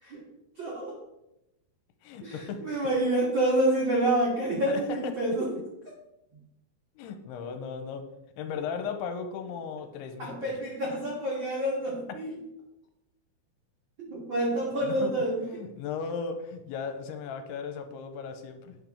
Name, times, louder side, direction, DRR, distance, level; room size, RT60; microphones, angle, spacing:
voice 1, 0.5-1.0 2.2-5.5 10.2-12.3 14.1-15.4, right 1 dB, 75° right, -5 dB, 1.0 m, -28 dB
voice 2, 2.0-2.9 4.7-5.1 7.0-8.0 8.4-10.6 14.6-15.1 15.5-18.8, left 6 dB, 85° left, 7 dB, 2.7 m, -36 dB
8.5 x 5.9 x 3.5 m, 0.89 s
omnidirectional pair, 4.7 m